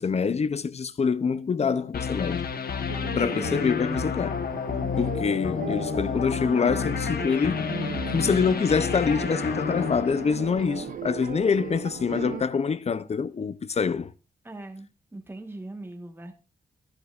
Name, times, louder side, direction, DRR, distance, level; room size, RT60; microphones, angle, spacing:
voice 1, 0.0-2.4 3.2-4.4 5.0-7.7 8.1-14.1, left 5 dB, 40° left, 0.6 m, -25 dB
sound 1, 1.9-11.0, left 6 dB, 70° left, 1.2 m, -30 dB
sound 2, 2.9-12.4, right 8 dB, 55° right, 0.5 m, -37 dB
voice 2, 14.4-16.3, right 2 dB, 15° right, 1.4 m, -40 dB
12.5 x 11.5 x 2.5 m
wide cardioid pair, 100°, 16 cm